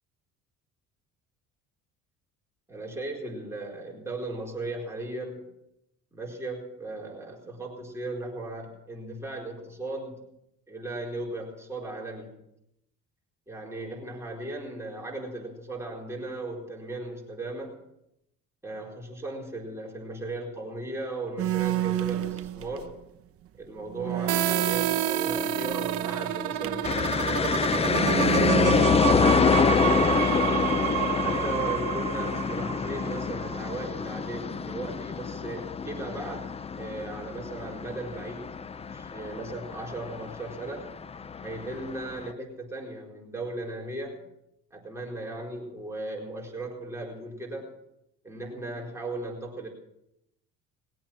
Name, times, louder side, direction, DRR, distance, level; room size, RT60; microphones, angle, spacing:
voice 1, 2.7-5.5 6.1-10.3 10.7-12.3 13.5-17.8 18.6-23.0 23.6-30.3 31.2-38.6 38.9-40.9 41.4-44.2 44.7-47.7 48.2-49.7, right 2 dB, 10° right, -2 dB, 4.4 m, -37 dB
sound 1, 21.4-23.0 23.5-23.6 23.9-26.9 27.8-28.8, right 13 dB, 50° right, 0.9 m, -31 dB
sound 2, 24.3-33.9, right 13 dB, 80° right, 1.4 m, -29 dB
sound 3, 26.8-42.3, left 5 dB, 20° left, 0.5 m, -27 dB
21.0 x 8.6 x 7.5 m, 0.82 s
cardioid pair, 100°, 30 cm